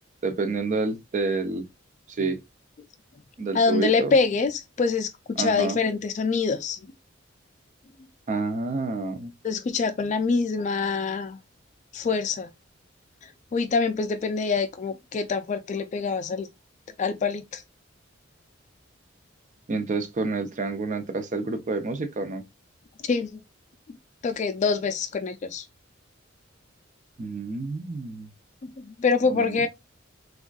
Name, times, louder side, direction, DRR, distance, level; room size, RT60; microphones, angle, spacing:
voice 1, 0.2-1.7 2.2-2.4 3.4-4.1 5.4-5.8 8.3-9.3 19.7-22.4 27.2-28.3 29.3-29.6, right 3 dB, 40° right, 0.4 m, -28 dB
voice 2, 3.5-6.8 8.3-8.4 9.4-11.4 11.9-12.5 13.5-16.5 17.0-17.6 23.1-23.4 24.2-25.6 28.6-29.7, left 4 dB, 40° left, 0.3 m, -25 dB
3.5 x 2.3 x 2.2 m
head